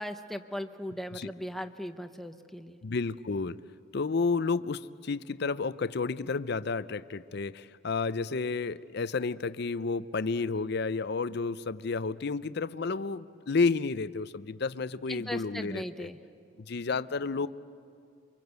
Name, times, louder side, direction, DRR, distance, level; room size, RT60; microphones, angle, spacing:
voice 1, 0.0-2.8 15.1-16.2, equal, ahead, 7 dB, 0.9 m, -38 dB
voice 2, 2.8-3.6 3.9-16.1 16.6-17.5, left 4 dB, 55° left, 14 dB, 0.6 m, -31 dB
28.0 x 25.0 x 8.1 m, 2.4 s
head